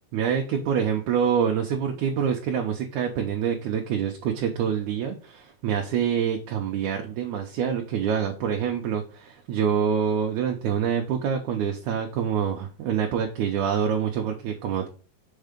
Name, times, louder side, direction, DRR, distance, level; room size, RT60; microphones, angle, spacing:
voice 1, 0.1-14.9, right 8 dB, 75° right, 2 dB, 2.1 m, -26 dB
6.5 x 4.7 x 5.1 m, 0.38 s
omnidirectional pair, 3.9 m